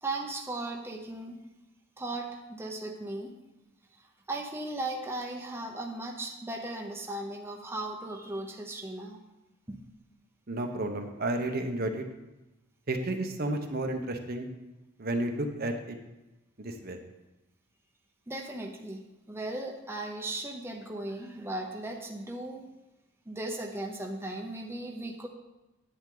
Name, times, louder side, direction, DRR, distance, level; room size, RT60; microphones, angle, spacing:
voice 1, 0.0-1.4 2.0-3.3 4.0-9.2 9.7-9.8 18.3-19.0 19.3-22.6 23.2-25.3, right 2 dB, 10° right, 0 dB, 0.9 m, -37 dB
voice 2, 10.5-12.0 12.9-14.5 15.0-16.0 16.6-17.0, right 1 dB, 45° right, 5 dB, 1.0 m, -32 dB
10.5 x 8.9 x 3.9 m, 1.0 s
head